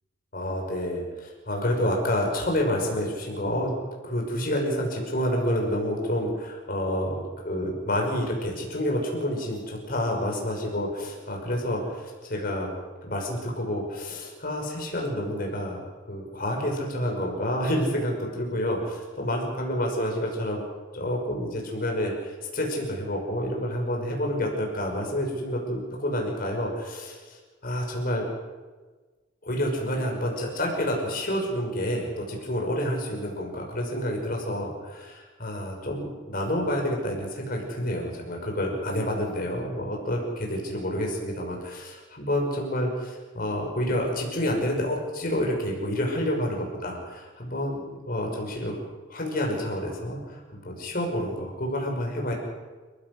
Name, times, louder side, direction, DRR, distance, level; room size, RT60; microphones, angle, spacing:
voice 1, 0.3-3.7 4.0-7.2 7.4-12.7 13.0-15.8 16.1-20.6 20.9-28.2 29.4-48.8 49.1-52.3, equal, 50° left, 0 dB, 5.9 m, -29 dB
29.5 x 15.5 x 6.4 m, 1.3 s
head